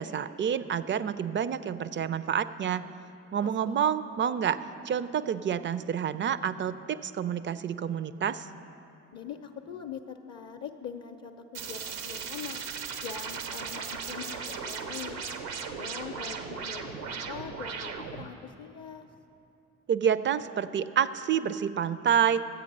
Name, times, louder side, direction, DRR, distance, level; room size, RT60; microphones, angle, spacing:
voice 1, 0.0-2.8 3.3-8.5 19.9-22.4, right 8 dB, 30° right, 15 dB, 0.4 m, -28 dB
voice 2, 3.4-3.8 9.1-12.6 13.0-15.2 15.6-19.1, left 7 dB, 45° left, 5 dB, 0.6 m, -42 dB
sound 1, 11.5-18.3, right 6 dB, 80° right, 0.7 m, -37 dB
11.5 x 8.3 x 5.4 m, 2.8 s
hypercardioid pair, 40°, 38 cm